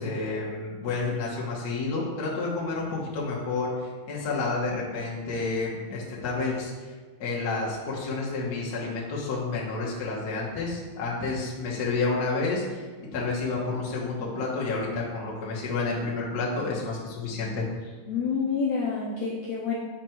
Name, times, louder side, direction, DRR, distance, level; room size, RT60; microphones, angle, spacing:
voice 1, 0.0-6.7 7.2-12.8 13.1-17.6, left 3 dB, 50° left, -5 dB, 1.1 m, -30 dB
voice 2, 18.1-19.7, left 5 dB, 75° left, -3 dB, 1.6 m, -28 dB
7.2 x 4.3 x 4.6 m, 1.5 s
omnidirectional pair, 3.8 m